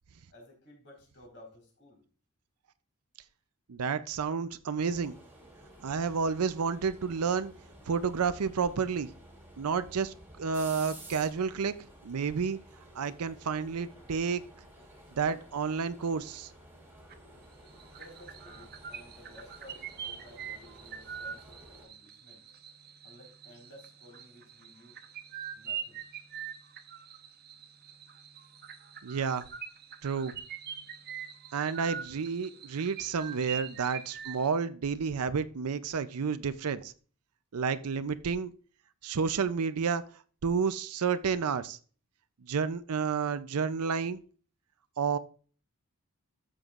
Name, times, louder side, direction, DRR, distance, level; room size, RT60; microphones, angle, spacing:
voice 1, 0.3-2.0 17.9-22.4 23.0-25.0 25.5-26.0 30.8-30.9, left 1 dB, 55° left, 0 dB, 4.4 m, -55 dB
voice 2, 3.7-5.1 5.8-7.5 7.9-9.1 9.6-11.7 12.0-12.6 12.9-14.4 15.2-16.5 29.0-29.4 30.0-30.4 31.5-36.9 37.5-38.5 39.0-40.0 40.4-41.8 42.5-44.2 45.0-45.2, right 5 dB, 85° right, 12 dB, 0.5 m, -30 dB
sound 1, 4.8-21.9, right 1 dB, 10° right, 2.7 m, -53 dB
sound 2, 17.1-17.4 17.7-34.5, right 8 dB, 45° right, 0.9 m, -44 dB
13.0 x 7.5 x 2.5 m, 0.40 s
head